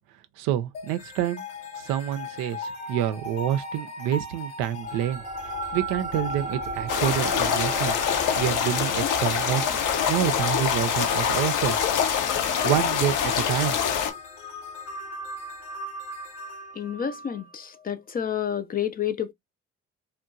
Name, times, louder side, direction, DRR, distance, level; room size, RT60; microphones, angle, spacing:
voice 1, 0.4-1.4 1.8-5.2 5.7-8.0 8.4-9.6 10.1-11.8 12.4-13.9, right 11 dB, 75° right, 0.5 m, -27 dB
sound 1, 0.7-17.9, left 2 dB, 90° left, 0.9 m, -39 dB
sound 2, 4.8-15.6, right 3 dB, 25° right, 0.6 m, -38 dB
sound 3, 6.9-14.1, left 8 dB, 65° left, 0.6 m, -25 dB
voice 2, 16.8-19.3, left 9 dB, 30° left, 0.4 m, -29 dB
2.8 x 2.2 x 2.3 m
hypercardioid pair, 45°, 34 cm